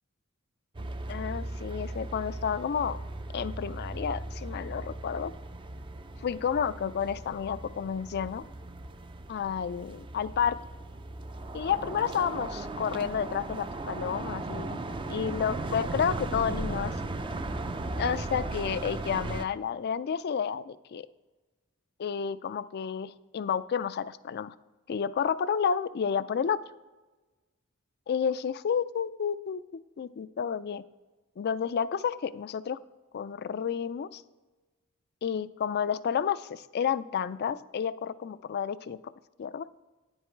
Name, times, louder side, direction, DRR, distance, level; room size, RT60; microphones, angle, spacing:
sound 1, 0.7-19.5, right 2 dB, 25° right, 0.4 m, -37 dB
voice 1, 1.1-3.0 3.3-5.3 6.2-8.4 9.3-10.6 11.5-14.8 15.1-16.9 18.0-21.1 22.0-24.6 24.9-26.6 28.1-29.6 30.0-30.8 31.4-32.8 33.1-34.2 35.2-39.0 39.4-39.7, left 7 dB, 50° left, 16 dB, 0.3 m, -30 dB
10.0 x 8.0 x 4.5 m, 1.2 s
head